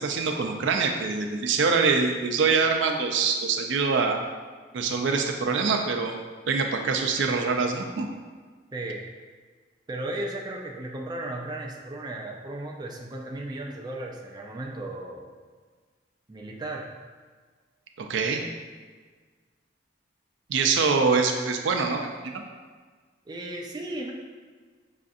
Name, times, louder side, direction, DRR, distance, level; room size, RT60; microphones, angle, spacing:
voice 1, 0.0-4.2 4.7-8.1 18.0-18.4 20.5-22.4, right 4 dB, 85° right, 4 dB, 0.4 m, -24 dB
voice 2, 8.7-9.0 9.9-15.4 16.3-16.9 23.3-24.1, right 1 dB, 25° right, 0 dB, 0.4 m, -35 dB
5.5 x 2.5 x 2.5 m, 1.5 s
head